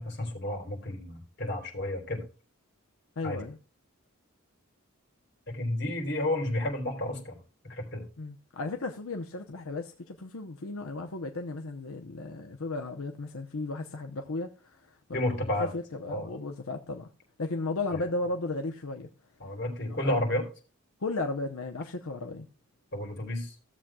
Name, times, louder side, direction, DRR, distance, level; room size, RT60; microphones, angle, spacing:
voice 1, 0.0-2.2 3.2-3.4 5.5-7.4 7.6-8.0 15.1-15.7 16.1-16.3 19.4-20.5 22.9-23.5, left 1 dB, 50° left, 3.4 m, -31 dB
voice 2, 3.2-3.6 8.2-17.1 17.4-19.1 19.9-20.1 21.0-22.5, left 2 dB, 80° left, 0.8 m, -35 dB
16.0 x 7.5 x 2.3 m
head